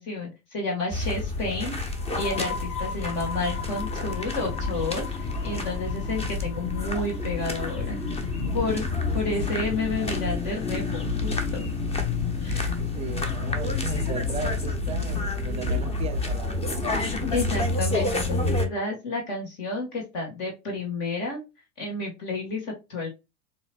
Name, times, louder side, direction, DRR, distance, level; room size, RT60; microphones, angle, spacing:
voice 1, 0.0-8.0 8.5-8.9 9.1-11.7 12.4-12.7 16.9-21.4 21.8-23.1, left 3 dB, 45° left, 2.0 m, -31 dB
sound 1, 0.9-18.7, left 3 dB, 15° left, 0.9 m, -28 dB
sound 2, 1.9-9.3, left 6 dB, 65° left, 0.8 m, -40 dB
voice 2, 12.7-16.8, right 7 dB, 15° right, 0.7 m, -36 dB
7.0 x 2.8 x 2.5 m
figure-of-eight pair, 85°, 45 cm